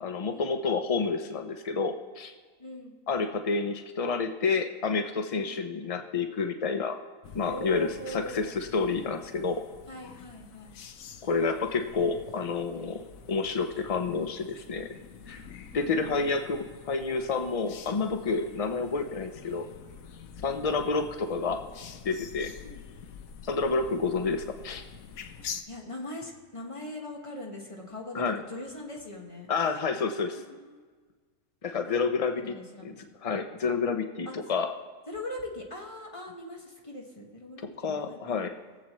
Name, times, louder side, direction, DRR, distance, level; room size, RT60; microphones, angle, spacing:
voice 1, 0.0-2.3 3.1-7.0 7.3-9.6 11.2-14.9 15.3-15.4 15.7-19.7 20.4-21.6 22.0-22.5 23.4-24.8 28.1-28.4 29.5-30.4 31.6-32.6 32.8-32.9 33.2-34.7 37.8-38.5, left 4 dB, 65° left, 6 dB, 0.3 m, -29 dB
voice 2, 2.6-3.0 5.3-5.6 7.4-8.6 9.9-10.9 15.7-16.2 22.6-22.8 25.7-29.5 30.3-30.8 32.4-33.1 34.2-34.4 35.1-38.4, left 1 dB, 25° left, -1 dB, 1.5 m, -41 dB
sound 1, 7.2-25.6, left 7 dB, 85° left, 1.1 m, -46 dB
20.5 x 7.5 x 3.1 m, 1.5 s
omnidirectional pair, 1.4 m